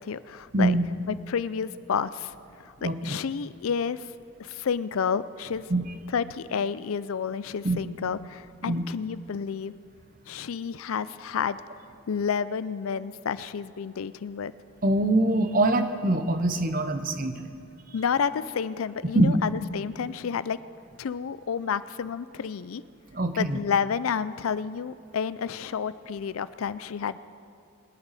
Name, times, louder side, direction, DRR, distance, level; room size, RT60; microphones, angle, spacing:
voice 1, 0.0-0.7 1.1-2.3 2.6-4.1 4.4-5.7 6.1-9.7 10.3-11.6 12.1-14.5 17.9-20.6 21.0-22.8 23.4-27.2, left 6 dB, 90° left, 16 dB, 0.4 m, -30 dB
voice 2, 0.5-0.9 2.8-3.2 5.7-5.8 7.6-7.8 8.6-8.8 14.8-17.6 19.0-19.4 23.1-23.6, right 2 dB, 40° right, 8 dB, 0.8 m, -24 dB
21.5 x 11.0 x 4.2 m, 2.4 s
head